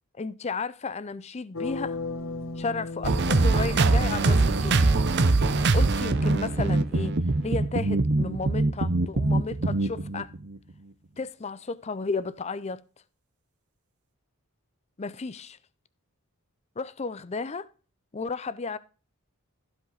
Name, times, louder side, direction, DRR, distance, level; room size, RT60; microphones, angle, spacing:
voice 1, 0.2-2.0 2.6-4.9 5.7-7.2 7.4-10.3 11.2-12.8 15.0-15.6 16.8-17.7 18.1-18.8, left 4 dB, 30° left, 0.5 m, -33 dB
sound 1, 1.5-4.6, left 3 dB, 70° left, 1.5 m, -36 dB
sound 2, 3.0-10.6, right 3 dB, 50° right, 0.7 m, -23 dB
15.0 x 5.2 x 3.9 m
head